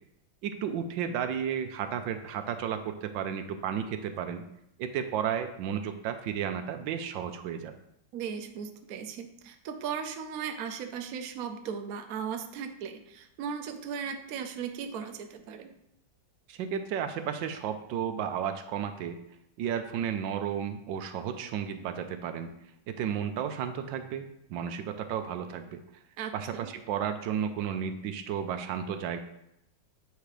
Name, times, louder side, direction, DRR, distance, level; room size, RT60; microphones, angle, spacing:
voice 1, 0.4-4.4 4.8-7.7 16.5-19.2 19.6-22.5 22.9-25.8 26.3-29.2, right 8 dB, 80° right, 8 dB, 1.3 m, -33 dB
voice 2, 8.1-15.7 26.2-26.7, right 7 dB, 65° right, 6 dB, 1.0 m, -37 dB
8.2 x 3.4 x 4.9 m, 0.79 s
omnidirectional pair, 2.0 m